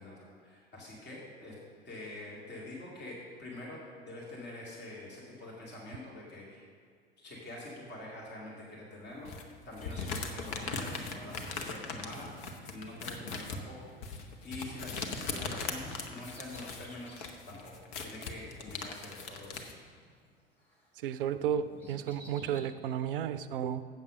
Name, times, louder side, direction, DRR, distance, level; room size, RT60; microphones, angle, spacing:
voice 1, 0.0-1.5 1.8-6.7 7.2-17.2 17.5-17.7 18.0-19.7, left 1 dB, 35° left, -4 dB, 2.4 m, -46 dB
sound 1, 9.2-19.7, left 4 dB, 55° left, 1.1 m, -40 dB
Bird vocalization bird call bird song, 9.8-14.4 14.7-17.4 17.9-18.0 18.9-20.3 20.6-22.6, equal, 5° left, 2.0 m, -55 dB
voice 2, 21.0-23.9, right 9 dB, 60° right, 13 dB, 0.5 m, -33 dB
8.0 x 7.3 x 6.3 m, 2.1 s
figure-of-eight pair, 75°, 30 cm